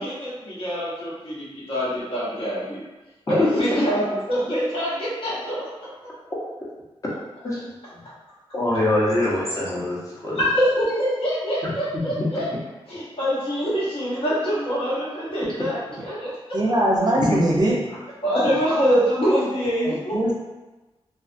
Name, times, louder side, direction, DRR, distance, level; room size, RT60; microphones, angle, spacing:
voice 1, 0.0-2.8 3.3-6.1 10.2-12.5 12.9-16.7 18.2-20.2, equal, 60° left, -8 dB, 1.0 m, -25 dB
voice 2, 3.4-3.8 7.4-7.6 8.5-10.4 11.6-11.7 17.2-17.3, left 1 dB, 30° left, -6 dB, 0.8 m, -23 dB
voice 3, 16.5-17.8 19.8-20.3, right 1 dB, 40° right, -4 dB, 0.5 m, -21 dB
2.4 x 2.3 x 2.5 m, 1.1 s
wide cardioid pair, 125°, 10 cm